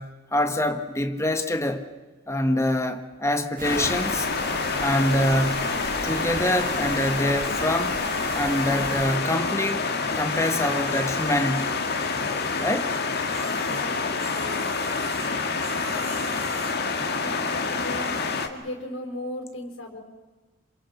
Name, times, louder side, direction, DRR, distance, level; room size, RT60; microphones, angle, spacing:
voice 1, 0.0-1.8 2.3-4.3 4.8-5.7 6.0-8.0 8.3-9.9 10.1-11.8 12.6-12.9, left 1 dB, 15° left, 1.6 m, -25 dB
sound 1, 3.6-18.5, left 4 dB, 55° left, 1.9 m, -27 dB
sound 2, 3.6-9.2, right 5 dB, 45° right, 0.7 m, -37 dB
sound 3, 5.2-7.2 7.9-10.0 10.3-16.7, right 4 dB, 85° right, 3.5 m, -42 dB
voice 2, 13.5-15.2 17.2-20.0, left 1 dB, 75° left, 4.7 m, -37 dB
27.5 x 27.5 x 5.9 m
head